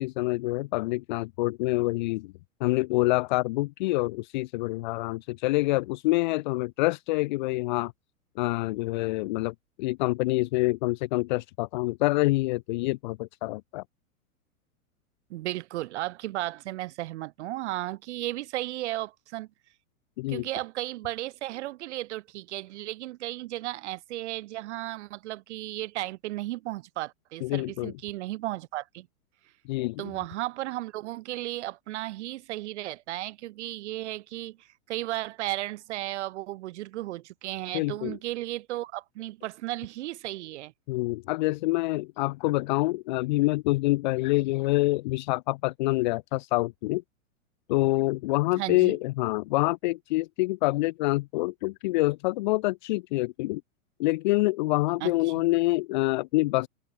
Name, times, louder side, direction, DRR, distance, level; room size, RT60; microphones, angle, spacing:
voice 1, 0.0-2.3 2.6-7.9 8.4-13.8 20.2-20.5 27.4-27.9 29.7-30.1 37.7-38.2 40.9-47.0 47.7-53.6 54.0-56.7, left 21 dB, 35° left, 0.4 m, -26 dB
voice 2, 15.3-19.5 20.3-29.1 30.0-40.7 48.6-49.0 55.0-55.1, right 16 dB, 55° right, 0.5 m, -34 dB
hypercardioid pair, 115°, 43 cm